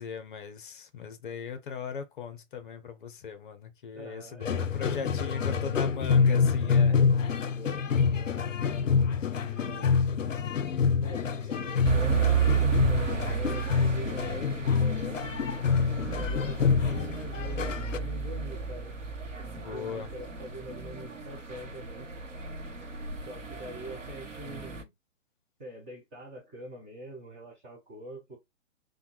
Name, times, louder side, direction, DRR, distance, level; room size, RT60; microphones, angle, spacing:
voice 1, 0.0-7.0 19.6-20.1, left 6 dB, 45° left, 0.7 m, -38 dB
voice 2, 3.9-5.9 6.9-8.6 9.3-10.1 11.0-15.4 16.2-18.9 19.3-22.1 23.3-24.9 25.6-28.4, right 1 dB, 10° right, 0.4 m, -44 dB
sound 1, 4.4-18.0, left 6 dB, 90° left, 0.5 m, -27 dB
sound 2, 11.8-24.8, right 7 dB, 85° right, 0.9 m, -32 dB
3.5 x 2.2 x 3.0 m
figure-of-eight pair, 125°, 37 cm